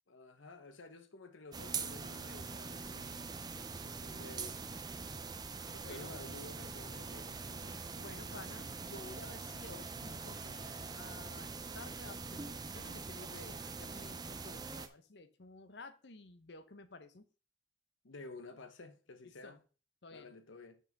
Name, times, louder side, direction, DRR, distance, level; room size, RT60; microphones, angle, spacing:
voice 1, 0.1-3.3 3.8-4.6 5.7-8.5 18.0-19.6 20.1-20.8, left 3 dB, 85° left, 1.0 m, -52 dB
sound 1, 1.5-14.9, right 4 dB, 20° right, 0.5 m, -43 dB
voice 2, 2.9-3.3 5.8-6.1 8.0-17.3 19.4-19.6 20.0-20.3, left 3 dB, 60° left, 0.8 m, -53 dB
6.3 x 5.6 x 5.2 m
head